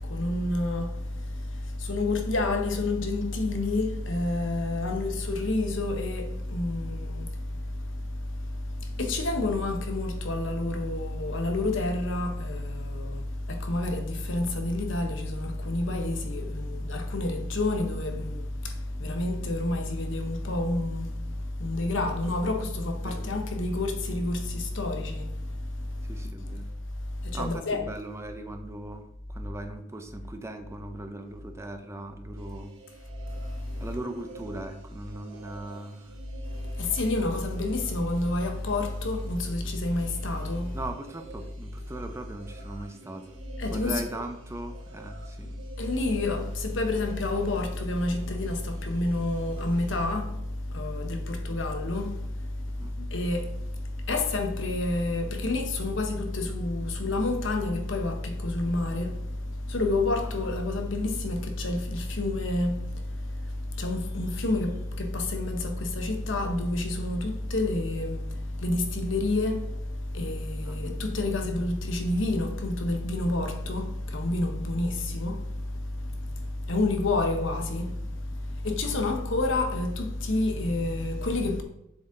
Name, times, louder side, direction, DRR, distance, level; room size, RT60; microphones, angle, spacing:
voice 1, 0.0-26.6 27.1-27.8 33.3-33.9 36.5-40.8 43.6-44.0 45.8-81.6, left 2 dB, 65° left, 0.9 m, -29 dB
voice 2, 26.1-26.7 27.3-32.7 33.8-36.2 40.7-43.4 43.7-45.6 52.7-53.0 60.2-60.3 70.6-70.9 78.8-79.0, right 1 dB, 15° right, 0.4 m, -39 dB
sound 1, 32.4-50.2, right 2 dB, 70° right, 1.0 m, -50 dB
7.2 x 4.0 x 3.8 m
head